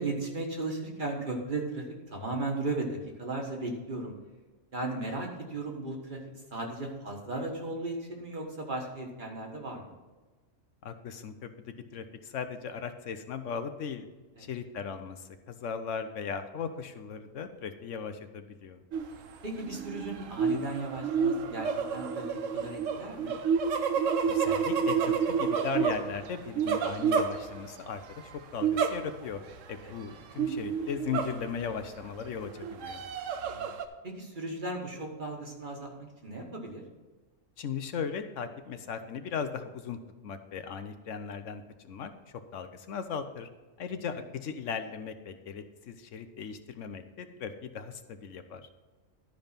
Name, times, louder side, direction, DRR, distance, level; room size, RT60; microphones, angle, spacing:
voice 1, 0.0-4.1 4.7-6.2 6.5-9.9 14.4-14.5 19.4-23.4 29.8-29.9 33.4-33.6 34.0-36.8, right 2 dB, 40° right, 1 dB, 1.7 m, -36 dB
voice 2, 10.8-11.5 11.9-14.1 14.4-18.8 24.3-29.4 29.7-33.0 37.6-40.0 40.2-42.1 42.5-43.5 43.8-48.7, left 6 dB, 70° left, 9 dB, 1.0 m, -37 dB
sound 1, 18.9-19.2 19.6-27.9 28.6-29.3 29.7-29.8 30.4-31.8 32.4-33.9, right 6 dB, 75° right, 1.1 m, -30 dB
12.0 x 5.3 x 5.7 m, 1.3 s
omnidirectional pair, 1.3 m